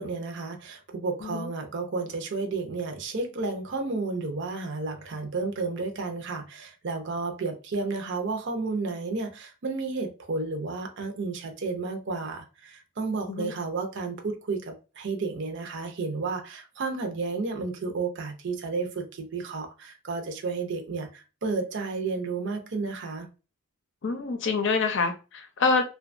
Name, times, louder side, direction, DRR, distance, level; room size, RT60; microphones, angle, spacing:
voice 1, 0.0-23.3, right 3 dB, 55° right, 0.6 m, -32 dB
voice 2, 24.0-25.8, left 4 dB, 60° left, 0.5 m, -26 dB
2.8 x 2.2 x 2.5 m
head